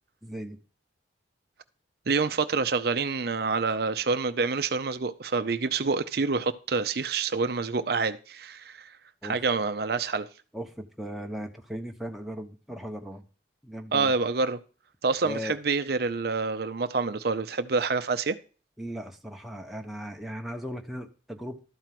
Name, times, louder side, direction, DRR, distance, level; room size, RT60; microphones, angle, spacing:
voice 1, 0.2-0.6 9.2-9.3 10.5-13.2 13.6-14.1 15.2-15.6 18.8-21.6, equal, ahead, 1.0 m, -37 dB
voice 2, 2.1-9.0 9.2-10.3 13.9-14.6 15.0-18.4, right 4 dB, 55° right, 0.6 m, -27 dB
12.5 x 4.5 x 7.5 m
head